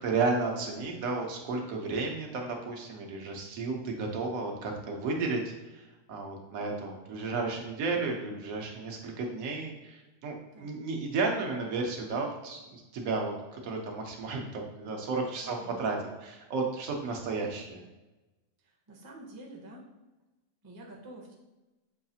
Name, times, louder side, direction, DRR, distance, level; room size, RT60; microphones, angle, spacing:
voice 1, 0.0-17.8, right 3 dB, 80° right, 1 dB, 1.2 m, -33 dB
voice 2, 15.4-15.8 18.9-19.8 20.6-21.3, right 1 dB, 30° right, -1 dB, 0.4 m, -47 dB
6.4 x 2.4 x 2.7 m, 1.1 s
omnidirectional pair, 1.4 m